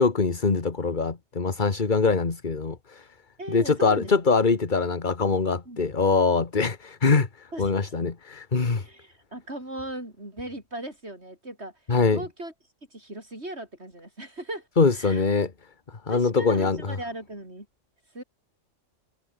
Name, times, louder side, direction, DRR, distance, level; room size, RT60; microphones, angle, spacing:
voice 1, 0.0-3.1 3.5-8.8 11.9-12.2 14.8-15.5 16.1-16.8, left 4 dB, 40° left, 1.8 m, -23 dB
voice 2, 3.4-4.1 5.7-5.8 7.5-7.7 8.7-12.5 12.9-14.7 14.9-15.2 16.1-17.7 18.1-18.2, right 1 dB, 55° right, 7.7 m, -38 dB
omnidirectional pair, 1.3 m